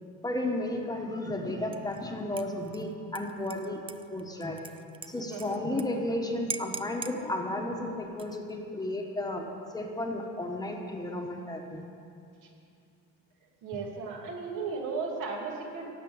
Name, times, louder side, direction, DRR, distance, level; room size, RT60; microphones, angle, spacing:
voice 1, 0.2-4.6 5.1-9.5 9.7-11.8, left 1 dB, 10° left, 2 dB, 1.1 m, -33 dB
Dishes pots and pans / Liquid, 1.7-2.0 2.4-5.9 6.1-6.2 6.5-7.2 8.0-8.5, right 5 dB, 15° right, 0.4 m, -41 dB
voice 2, 13.6-15.9, right 4 dB, 70° right, 0 dB, 2.7 m, -35 dB
17.0 x 7.5 x 8.7 m, 2.6 s
cardioid pair, 150°, 32 cm